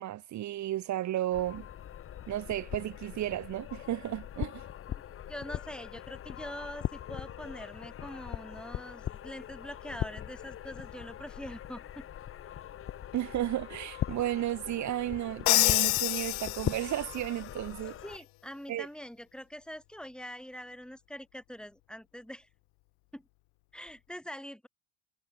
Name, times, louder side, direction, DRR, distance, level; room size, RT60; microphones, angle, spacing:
voice 1, 0.0-1.7 2.3-4.6 13.1-17.9 18.7-18.9, right 13 dB, 45° right, 1.8 m, -33 dB
sound 1, 1.3-18.2, left 10 dB, 35° left, 1.1 m, -41 dB
voice 2, 5.3-12.1 18.0-22.5 23.1-23.2 23.7-24.7, equal, ahead, 3.0 m, -44 dB
Crash cymbal, 15.5-17.2, left 30 dB, 70° left, 1.2 m, -27 dB
cardioid pair, 125°, 39 cm